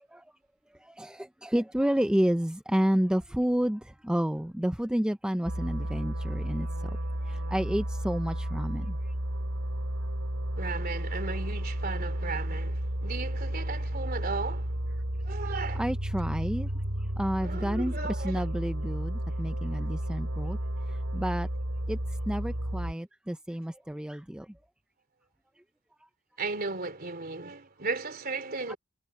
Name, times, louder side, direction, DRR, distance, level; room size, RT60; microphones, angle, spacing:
voice 1, 0.8-7.0 7.3-9.0 15.7-16.7 17.2-20.6 20.9-21.5 21.9-22.0 22.3-24.5 28.7-28.8, equal, 5° right, 0.4 m, -30 dB
sound 1, 5.4-22.9, right 1 dB, 85° right, 3.4 m, -32 dB
voice 2, 10.6-14.8 15.2-15.8 17.4-18.5 26.4-28.8, right 3 dB, 45° right, 3.6 m, -35 dB
head